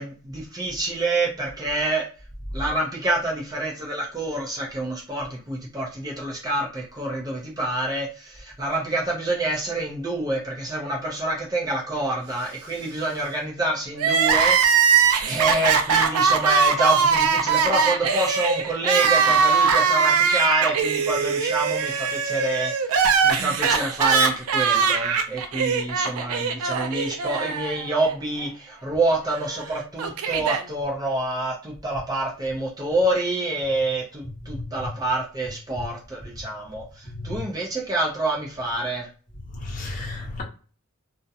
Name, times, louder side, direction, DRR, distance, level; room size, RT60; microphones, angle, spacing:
voice 1, 0.0-2.0 2.5-39.1, right 2 dB, 15° right, 0.5 m, -27 dB
Crying sobbing, 14.0-28.1 28.4-28.5 29.5-30.6, right 6 dB, 75° right, 0.4 m, -21 dB
voice 2, 34.5-34.9 37.1-37.4 39.5-40.4, left 2 dB, 35° left, 0.8 m, -33 dB
2.3 x 2.0 x 2.7 m
head